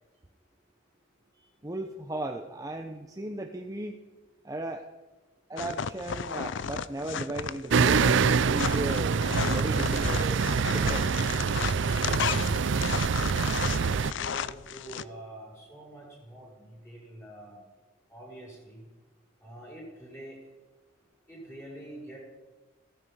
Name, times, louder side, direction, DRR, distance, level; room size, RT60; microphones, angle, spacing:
voice 1, 1.4-4.0 4.4-4.9 5.5-9.2 9.5-11.1, right 1 dB, 15° right, 4 dB, 0.8 m, -36 dB
sound 1, 5.6-15.0, left 7 dB, 60° left, 0.5 m, -34 dB
sound 2, 7.7-14.1, right 5 dB, 60° right, 0.5 m, -25 dB
voice 2, 13.5-17.6 18.1-18.8 19.4-20.3 21.3-22.2, right 1 dB, 15° left, -3 dB, 6.8 m, -46 dB
16.0 x 14.5 x 5.6 m, 1.2 s
head